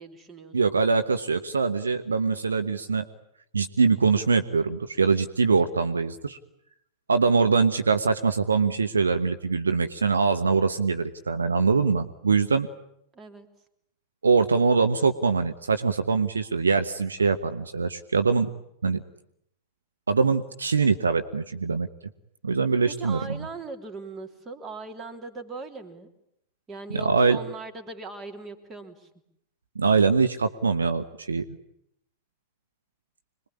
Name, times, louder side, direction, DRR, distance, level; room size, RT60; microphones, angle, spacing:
voice 1, 0.0-0.8 13.1-13.5 22.9-26.1 26.7-29.1, right 3 dB, 20° right, 6 dB, 3.4 m, -40 dB
voice 2, 0.5-3.0 3.5-6.4 7.1-12.7 14.2-18.5 18.8-19.0 20.1-21.9 22.4-23.4 26.9-27.4 29.7-31.4, right 4 dB, 75° right, 9 dB, 1.2 m, -23 dB
26.0 x 21.5 x 9.9 m, 0.76 s
figure-of-eight pair, 90°, 0 cm